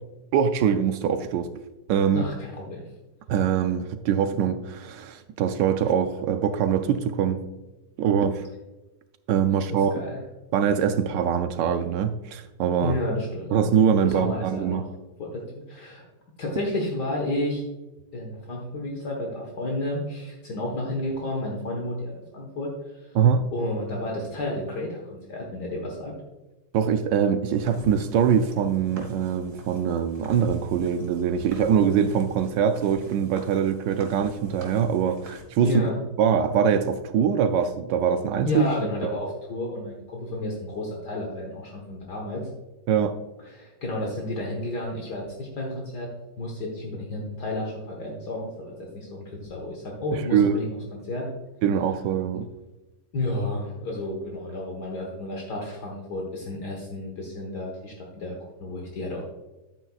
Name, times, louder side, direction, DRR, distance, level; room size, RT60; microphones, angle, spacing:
voice 1, 0.3-1.5 1.9-2.3 3.3-7.4 8.0-8.5 9.3-9.9 10.5-13.0 13.5-14.8 23.1-23.5 26.7-35.8 36.2-38.6 39.0-39.1 42.9-43.2 50.1-50.6 51.6-52.5, right 7 dB, 80° right, 9 dB, 1.2 m, -23 dB
voice 2, 2.1-2.9 9.7-10.2 12.8-13.6 14.0-14.8 15.2-15.4 15.7-16.0 16.4-17.6 18.1-23.2 23.5-26.1 35.6-36.0 38.4-42.5 43.5-46.1 46.4-51.3 53.1-59.2, left 1 dB, 65° left, -1 dB, 1.9 m, -31 dB
sound 1, 27.6-35.4, equal, 35° right, 2.2 m, -46 dB
10.5 x 9.0 x 2.4 m, 1.1 s
omnidirectional pair, 1.9 m